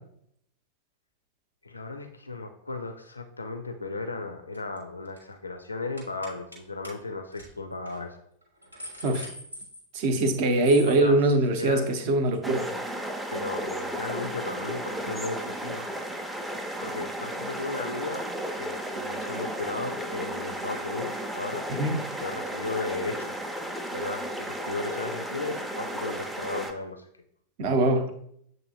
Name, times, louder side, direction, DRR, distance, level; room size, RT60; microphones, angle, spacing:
voice 1, 1.6-8.2 10.9-11.2 11.6-11.9 13.3-15.9 16.8-21.7 22.0-23.4 23.9-27.1, left 3 dB, 80° left, 6 dB, 0.4 m, -35 dB
sound 1, 4.5-4.8 5.0-5.3 6.0-6.6 6.8-6.9 7.3-7.5 7.9-8.0 8.4-10.3 10.6-11.0, left 1 dB, 85° right, 1.4 m, -42 dB
voice 2, 9.9-12.6 21.7-22.0 27.6-28.1, right 2 dB, 45° right, 7 dB, 0.7 m, -23 dB
sound 2, 12.4-26.7, equal, 5° right, 0.5 m, -34 dB
7.4 x 2.6 x 2.7 m, 0.70 s
figure-of-eight pair, 90°, 0 cm